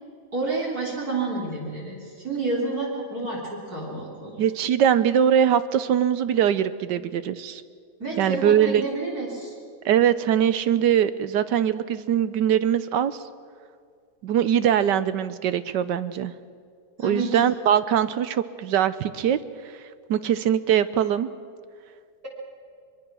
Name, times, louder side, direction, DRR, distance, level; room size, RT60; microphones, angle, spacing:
voice 1, 0.3-4.4 8.0-9.5 17.0-17.4, right 3 dB, 50° right, -4 dB, 4.3 m, -29 dB
voice 2, 4.4-7.6 8.2-8.8 9.8-13.2 14.2-16.3 17.0-19.4 20.1-21.3, right 9 dB, 70° right, 14 dB, 1.3 m, -22 dB
23.0 x 23.0 x 6.2 m, 2.1 s
omnidirectional pair, 2.1 m